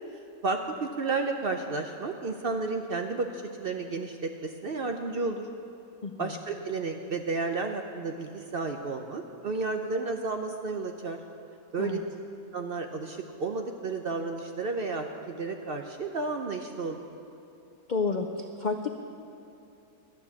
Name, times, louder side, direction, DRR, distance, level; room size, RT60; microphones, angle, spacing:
voice 1, 0.4-5.5 6.2-11.2 11.7-12.0 12.5-17.0, right 3 dB, 55° right, 4 dB, 0.7 m, -32 dB
voice 2, 6.0-6.4 11.8-12.0 17.9-18.9, left 4 dB, 60° left, 5 dB, 0.4 m, -30 dB
12.5 x 9.3 x 7.1 m, 2.8 s
omnidirectional pair, 1.6 m